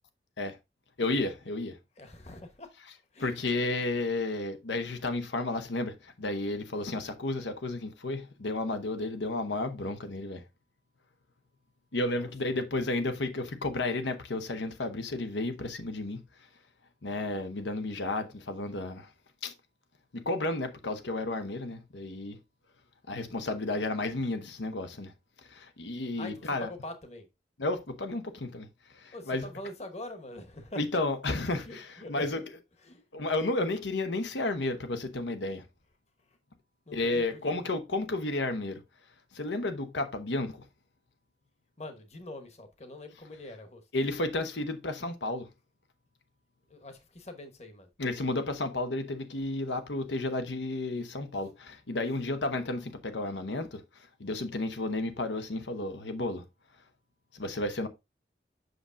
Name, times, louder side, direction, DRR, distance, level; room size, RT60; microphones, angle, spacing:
voice 1, 1.0-1.8 3.2-10.4 11.9-16.2 17.0-19.1 19.4-19.5 20.1-22.4 23.1-25.1 25.5-26.7 27.6-28.7 28.9-29.5 30.8-32.4 33.1-35.6 36.9-38.8 39.3-40.7 43.9-45.5 48.0-56.4 57.3-57.9, left 2 dB, 90° left, 1.0 m, -32 dB
voice 2, 2.0-2.7 3.1-3.4 12.1-12.6 26.2-27.3 29.1-31.0 31.5-32.3 32.8-33.0 36.9-37.6 41.8-43.8 46.7-47.9, left 1 dB, 35° left, 1.2 m, -44 dB
7.9 x 6.2 x 2.6 m
head